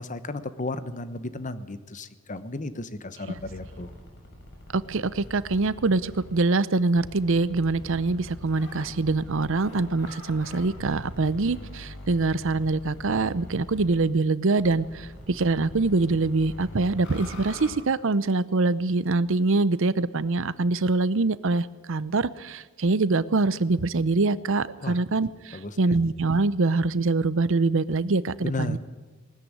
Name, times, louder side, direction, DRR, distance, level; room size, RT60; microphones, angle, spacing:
voice 1, 0.0-3.9 24.8-25.0 25.5-26.0 28.4-28.8, left 2 dB, 40° left, 13 dB, 1.1 m, -34 dB
sound 1, 3.4-6.4 7.0-14.0 14.6-17.7, left 1 dB, 60° left, 6.2 m, -43 dB
voice 2, 4.7-28.8, right 3 dB, 65° right, 17 dB, 0.7 m, -24 dB
19.0 x 13.5 x 9.9 m, 1.3 s
head